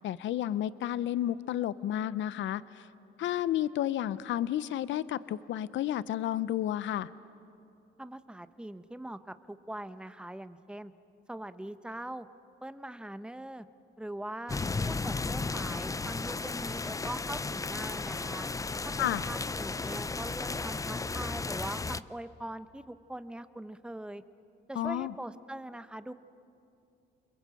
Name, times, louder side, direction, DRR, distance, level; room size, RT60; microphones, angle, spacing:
voice 1, 0.0-2.9 3.2-7.1 19.0-19.2 24.8-25.1, left 12 dB, 70° left, 17 dB, 0.6 m, -31 dB
voice 2, 8.0-10.9 11.3-12.3 12.6-13.7 14.0-14.6 14.9-18.5 18.8-24.2 24.7-26.1, right 1 dB, 5° right, 12 dB, 0.9 m, -42 dB
sound 1, 14.5-22.0, left 3 dB, 15° left, 0.5 m, -34 dB
28.5 x 21.5 x 7.7 m, 2.6 s
cardioid pair, 90°, 20 cm